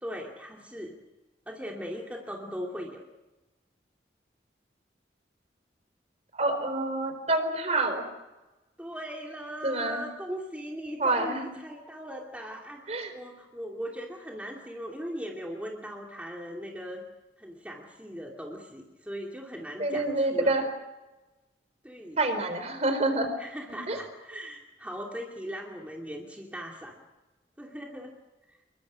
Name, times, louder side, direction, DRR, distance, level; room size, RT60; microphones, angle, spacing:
voice 1, 0.0-0.9 1.5-3.0 8.8-17.0 17.4-20.6 21.8-22.2 23.4-27.0 27.6-28.1 28.5-28.6, equal, 10° right, -1 dB, 2.6 m, -39 dB
voice 2, 6.3-8.0 9.6-10.0 11.0-11.5 12.9-13.1 19.8-20.7 22.2-23.3 23.7-24.0, right 2 dB, 40° right, 7 dB, 4.4 m, -27 dB
27.5 x 23.0 x 6.3 m, 1.1 s
head